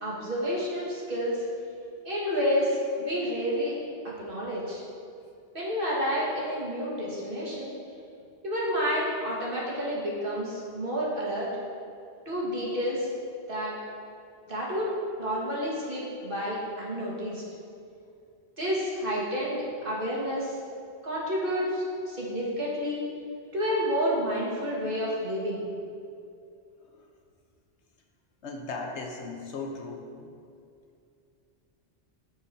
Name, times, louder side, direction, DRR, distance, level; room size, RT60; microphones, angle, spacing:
voice 1, 0.0-1.4 2.0-3.8 4.2-4.8 5.5-7.7 8.4-11.5 12.3-13.1 13.5-13.7 14.5-14.9 15.2-17.4 18.6-20.5 21.0-23.0 23.5-25.6, equal, 50° right, -7 dB, 2.0 m, -29 dB
voice 2, 28.4-30.3, left 3 dB, 80° left, 2 dB, 1.2 m, -37 dB
14.0 x 4.9 x 2.8 m, 2.5 s
omnidirectional pair, 1.1 m